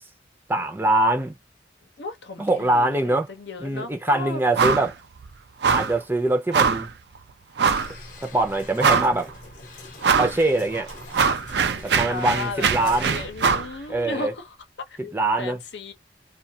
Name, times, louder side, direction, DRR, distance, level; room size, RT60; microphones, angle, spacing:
voice 1, 0.5-1.4 2.4-3.3 3.6-4.9 5.7-6.9 8.2-9.3 10.1-10.9 11.8-13.2 13.9-14.3 15.0-15.6, right 2 dB, 10° right, 0.6 m, -23 dB
voice 2, 2.0-4.4 10.0-10.8 12.1-14.6 14.9-15.9, left 3 dB, 75° left, 0.8 m, -35 dB
sound 1, 4.6-4.9 5.2-5.3 5.6-6.0 6.5-6.9 7.6-7.9 8.4-8.5 8.8-9.3 10.0-10.4 10.7-13.7, right 5 dB, 65° right, 0.4 m, -22 dB
sound 2, 7.6-14.6, left 2 dB, 45° left, 0.9 m, -43 dB
2.4 x 2.4 x 2.6 m
head